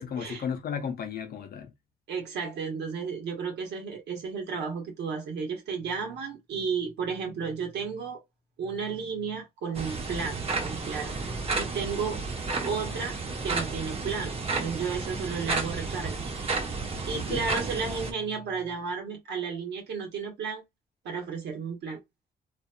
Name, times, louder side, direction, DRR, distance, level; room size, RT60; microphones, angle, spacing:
voice 1, 0.0-1.7 17.1-17.5, left 7 dB, 60° left, 0.7 m, -34 dB
voice 2, 2.1-8.2 8.6-11.1 11.6-12.2 12.6-16.2 17.1-20.6 21.0-22.0, right 5 dB, 85° right, 1.1 m, -33 dB
sound 1, 9.7-18.1, right 4 dB, 35° right, 0.9 m, -32 dB
2.6 x 2.4 x 2.2 m
cardioid pair, 85°, 17 cm